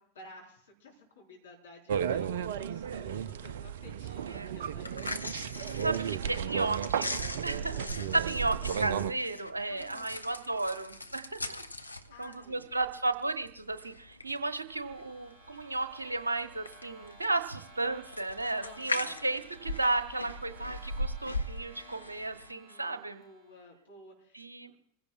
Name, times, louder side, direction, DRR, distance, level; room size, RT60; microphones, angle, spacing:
voice 1, 0.0-5.1 7.4-8.9 9.7-10.2 11.8-12.7 18.6-19.4 21.7-24.8, left 3 dB, 65° left, -2 dB, 4.3 m, -54 dB
sound 1, 1.9-9.1, right 8 dB, 60° right, 0.5 m, -34 dB
sound 2, 4.7-22.5, left 1 dB, 85° left, 0.7 m, -41 dB
voice 2, 5.7-7.1 7.4-11.6 12.2-23.2 24.3-24.7, right 2 dB, 80° right, 9 dB, 1.0 m, -34 dB
sound 3, 14.0-23.7, right 2 dB, 5° right, 5.9 m, -56 dB
26.5 x 16.0 x 2.4 m, 0.70 s
figure-of-eight pair, 90°, 0 cm